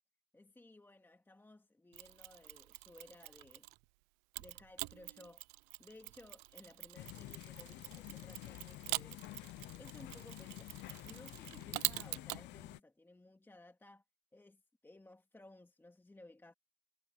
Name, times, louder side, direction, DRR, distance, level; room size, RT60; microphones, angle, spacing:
voice 1, 0.3-3.7 4.4-5.4 5.8-9.2 9.8-10.7 11.0-14.0 14.3-16.5, left 2 dB, 5° left, 2.5 m, -58 dB
Mechanisms, 1.9-3.8 4.3-12.4, right 27 dB, 40° right, 0.7 m, -45 dB
sound 1, 6.9-12.8, left 18 dB, 30° left, 0.7 m, -50 dB
hypercardioid pair, 130°, 40 cm